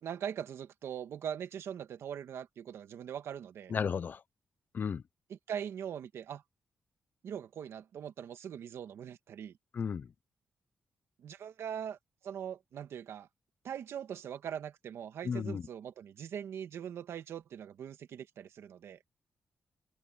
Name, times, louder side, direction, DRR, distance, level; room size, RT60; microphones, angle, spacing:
voice 1, 0.0-3.7 5.3-6.4 7.2-9.6 11.2-12.0 12.2-13.3 13.6-19.0, right 8 dB, 85° right, 1.6 m, -41 dB
voice 2, 3.7-4.2 4.7-5.0 9.7-10.1 15.2-15.7, left 6 dB, 45° left, 0.5 m, -34 dB
wide cardioid pair, 140°, 4 cm